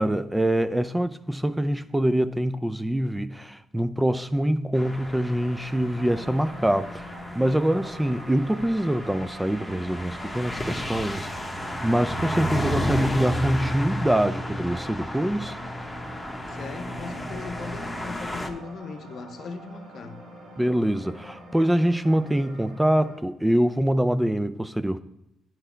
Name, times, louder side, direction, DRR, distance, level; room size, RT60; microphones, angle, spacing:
voice 1, 0.0-15.6 20.6-25.0, right 1 dB, 10° right, 0.4 m, -24 dB
sound 1, 4.7-18.5, equal, 10° left, 1.1 m, -32 dB
sound 2, 4.8-23.2, right 1 dB, 65° right, 2.4 m, -44 dB
voice 2, 16.5-20.2, left 4 dB, 55° left, 0.7 m, -38 dB
9.8 x 4.6 x 4.4 m
hypercardioid pair, 45°, 0 cm